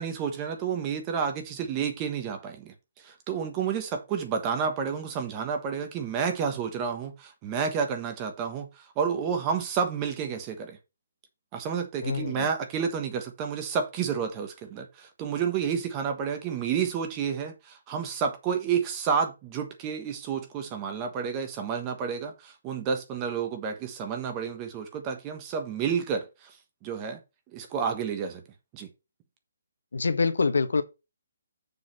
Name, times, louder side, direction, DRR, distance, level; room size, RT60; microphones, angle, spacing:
voice 1, 0.0-10.8 11.5-26.5 26.8-27.2 27.5-28.4 28.7-28.9, right 6 dB, 20° right, 1.3 m, -30 dB
voice 2, 12.0-12.5 29.9-30.8, left 4 dB, 85° left, 1.3 m, -25 dB
6.9 x 4.1 x 6.7 m
hypercardioid pair, 170°, 0 cm